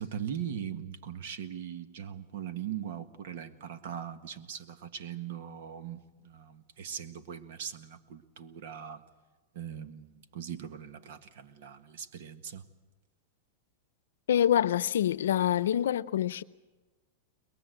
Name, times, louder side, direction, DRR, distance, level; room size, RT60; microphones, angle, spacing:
voice 1, 0.0-9.0 9.5-12.6, right 9 dB, 65° right, 1.6 m, -40 dB
voice 2, 14.3-16.4, left 10 dB, 90° left, 0.7 m, -26 dB
22.0 x 22.0 x 8.0 m
supercardioid pair, 150°, 0 cm